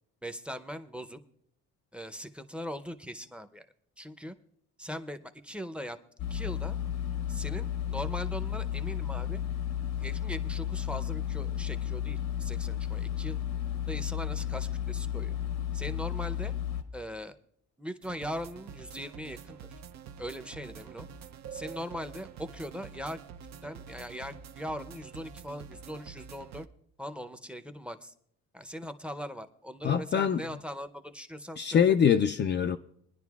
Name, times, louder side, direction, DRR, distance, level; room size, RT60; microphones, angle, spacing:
voice 1, 0.2-1.2 1.9-3.7 4.0-4.3 4.8-6.0 6.3-6.8 7.3-9.4 10.0-13.4 13.9-15.4 15.7-16.5 16.9-17.4 17.8-19.6 20.2-21.1 21.5-23.2 23.6-26.7 27.0-28.1 28.5-32.0, equal, 5° right, 0.6 m, -40 dB
sound 1, 6.2-16.8, left 10 dB, 85° left, 1.1 m, -33 dB
sound 2, 18.0-26.7, right 7 dB, 65° right, 0.6 m, -47 dB
voice 2, 29.8-30.4 31.6-32.8, left 8 dB, 40° left, 0.4 m, -24 dB
23.0 x 10.0 x 2.4 m
cardioid pair, 90°, 30 cm